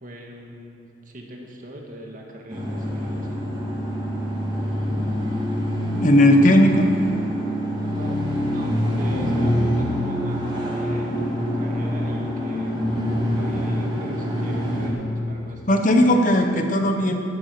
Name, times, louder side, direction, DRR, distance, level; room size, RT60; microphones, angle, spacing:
voice 1, 0.0-3.5 7.9-16.0, right 1 dB, 45° right, 0 dB, 1.7 m, -40 dB
sound 1, 2.5-14.9, equal, 25° right, 2.5 m, -25 dB
voice 2, 6.0-6.8 15.7-17.1, left 1 dB, 40° left, 4 dB, 1.1 m, -16 dB
16.0 x 8.5 x 6.7 m, 3.0 s
head